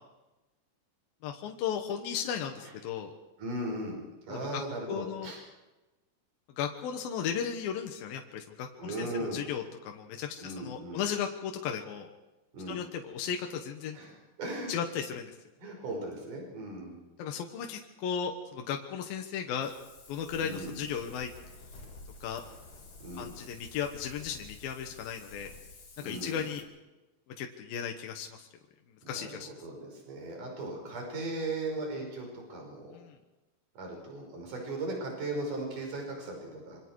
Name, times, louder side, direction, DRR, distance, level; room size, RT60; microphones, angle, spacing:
voice 1, 1.2-3.1 4.3-4.6 4.9-5.3 6.6-12.1 12.7-14.0 14.7-15.3 17.2-19.7 20.1-21.3 22.2-22.4 23.2-25.5 26.0-26.6 27.4-28.5 29.1-29.5 32.9-33.2, left 8 dB, 75° left, 3 dB, 3.0 m, -35 dB
voice 2, 2.3-2.7 3.4-4.0 4.3-5.4 8.8-9.5 10.4-11.0 12.5-12.8 13.9-14.7 15.6-17.0 20.4-20.9 23.0-23.4 26.0-26.5 29.0-32.9 33.8-36.8, right 2 dB, 55° right, 1 dB, 7.0 m, -38 dB
Wind, 19.6-26.6, left 3 dB, 40° left, 4.9 m, -51 dB
26.5 x 24.5 x 4.7 m, 1.1 s
omnidirectional pair, 4.4 m